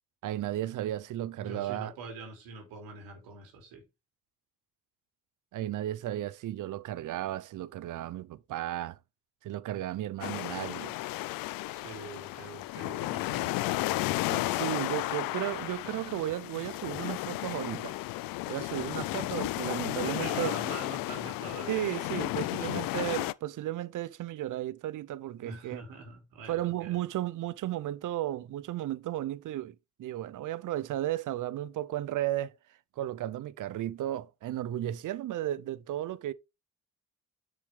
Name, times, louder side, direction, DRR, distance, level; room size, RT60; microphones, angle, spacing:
voice 1, 0.2-1.9 5.5-9.0 9.4-11.0 14.3-18.0 18.5-20.5 21.7-25.8 26.5-32.5 33.0-36.3, right 13 dB, 65° right, 0.7 m, -34 dB
voice 2, 1.4-3.8 11.7-14.0 19.8-21.9 25.3-27.0, right 3 dB, 90° right, 3.7 m, -44 dB
sound 1, 10.2-23.3, left 19 dB, 80° left, 0.5 m, -33 dB
6.7 x 6.6 x 3.6 m
cardioid pair, 75°, 34 cm